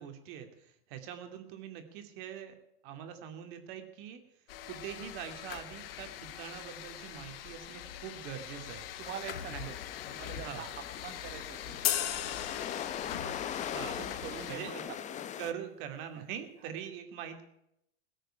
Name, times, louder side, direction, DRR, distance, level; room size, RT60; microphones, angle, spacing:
voice 1, 0.0-2.6 2.8-4.2 4.7-6.1 6.4-8.8 9.5-9.7 10.3-10.6 13.7-14.0 14.5-14.8 15.4-17.4, right 9 dB, 55° right, 7 dB, 2.5 m, -43 dB
sound 1, 4.5-14.6, left 11 dB, 70° left, 1.2 m, -44 dB
sound 2, 9.0-15.5, left 9 dB, 25° left, 0.8 m, -41 dB
voice 2, 9.0-9.8 10.1-10.7 11.0-12.7 13.1-15.0 16.1-16.2 16.6-16.7, right 9 dB, 35° right, 6 dB, 1.2 m, -46 dB
sound 3, 11.8-13.5, left 12 dB, 50° left, 1.5 m, -34 dB
17.0 x 6.6 x 10.0 m, 0.80 s
hypercardioid pair, 120°, 30 cm